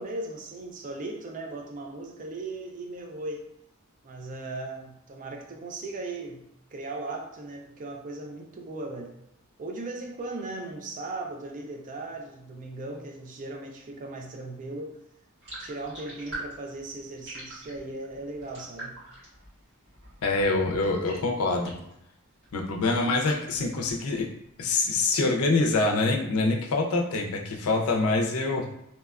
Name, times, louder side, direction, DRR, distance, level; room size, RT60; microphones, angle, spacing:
voice 1, 0.0-3.5 4.0-9.1 9.6-15.0 15.6-19.0, right 2 dB, 35° right, 1 dB, 0.4 m, -37 dB
sound 1, 15.4-22.0 22.3-24.4, right 2 dB, 55° right, 1.5 m, -44 dB
voice 2, 20.2-21.7 22.5-24.3 24.6-28.7, left 3 dB, 70° left, 2 dB, 0.5 m, -25 dB
2.8 x 2.2 x 2.3 m, 0.79 s
head